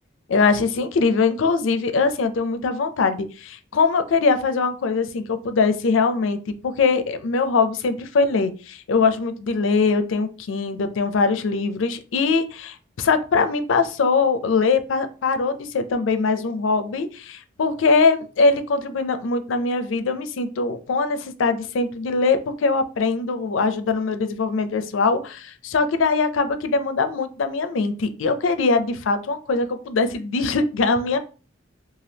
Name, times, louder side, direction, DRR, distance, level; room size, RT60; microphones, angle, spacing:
voice 1, 0.3-31.2, left 4 dB, 80° left, 9 dB, 0.4 m, -22 dB
2.7 x 2.4 x 3.3 m, 0.36 s
head